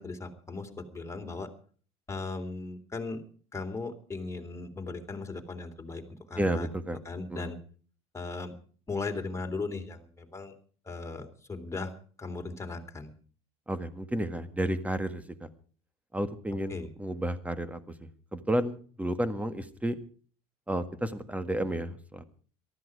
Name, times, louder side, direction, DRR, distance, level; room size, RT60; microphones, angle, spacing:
voice 1, 0.0-1.5 2.1-3.2 3.5-6.7 7.0-7.6 8.1-8.5 8.9-10.5 10.8-11.9 12.2-13.1 16.7-16.9, left 3 dB, 15° left, 3 dB, 3.4 m, -37 dB
voice 2, 6.4-7.0 7.3-7.5 13.7-15.5 16.1-17.9 18.3-20.0 20.7-22.2, right 1 dB, 10° right, 11 dB, 1.8 m, -32 dB
18.5 x 14.0 x 4.8 m, 0.43 s
supercardioid pair, 90°, 18 cm